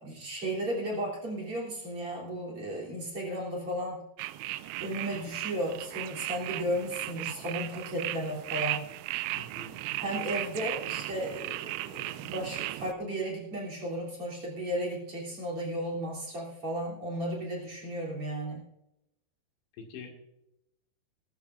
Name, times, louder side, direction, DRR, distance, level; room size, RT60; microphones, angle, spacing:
voice 1, 0.0-4.1 4.8-8.8 9.6-9.7 10.0-18.7, right 1 dB, 35° right, -2 dB, 3.7 m, -34 dB
sound 1, 4.2-12.9, right 17 dB, 90° right, 2.9 m, -36 dB
voice 2, 9.3-9.8 19.8-20.1, left 5 dB, 85° left, 2 dB, 4.4 m, -45 dB
19.0 x 14.0 x 2.6 m, 0.87 s
omnidirectional pair, 5.1 m